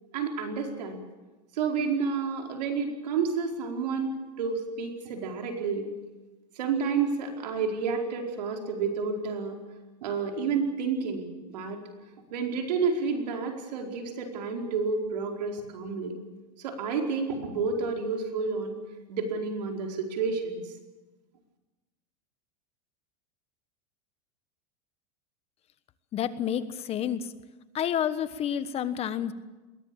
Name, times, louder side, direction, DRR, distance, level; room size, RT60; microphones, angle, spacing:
voice 1, 0.1-1.0 1.5-5.8 6.5-9.6 10.0-11.8 12.3-16.2 16.6-18.8 19.1-20.6, right 5 dB, 85° right, 2 dB, 4.7 m, -30 dB
voice 2, 26.1-27.3 27.7-29.3, left 9 dB, 30° left, 13 dB, 1.3 m, -29 dB
21.5 x 17.5 x 8.7 m, 1.2 s
supercardioid pair, 135°, 21 cm